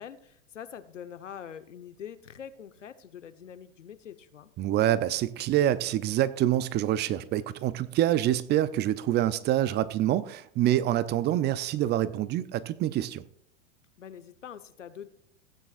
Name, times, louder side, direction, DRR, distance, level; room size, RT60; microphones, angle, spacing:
voice 1, 0.0-4.5 14.0-15.1, left 8 dB, 90° left, 1.1 m, -44 dB
voice 2, 4.6-13.2, right 12 dB, 30° right, 0.6 m, -26 dB
16.0 x 9.1 x 2.5 m
hypercardioid pair, 110°, 36 cm